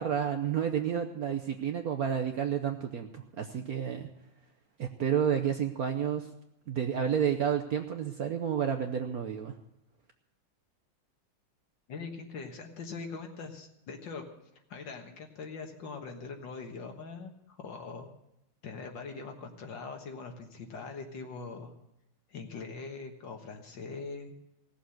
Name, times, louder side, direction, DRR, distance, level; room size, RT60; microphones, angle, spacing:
voice 1, 0.0-4.1 4.8-6.3 6.7-9.5, right 8 dB, 60° right, 5 dB, 1.0 m, -30 dB
voice 2, 11.9-14.2 14.7-18.1 18.6-21.7 22.3-24.3, left 4 dB, 60° left, 4 dB, 2.1 m, -42 dB
17.0 x 7.2 x 7.7 m, 0.86 s
omnidirectional pair, 2.3 m